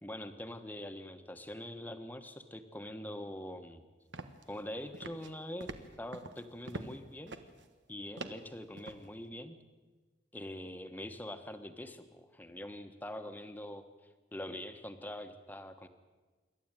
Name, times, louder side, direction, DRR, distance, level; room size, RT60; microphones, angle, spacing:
voice 1, 0.0-3.8 4.5-5.7 6.0-7.3 7.9-9.6 10.3-13.8 14.3-15.9, left 1 dB, 10° left, 8 dB, 1.3 m, -44 dB
sound 1, 4.1-4.6 4.9-5.3 5.6-7.0 7.3-7.7 8.2-9.0, right 2 dB, 90° right, 1.5 m, -44 dB
27.5 x 12.5 x 9.1 m, 1.3 s
head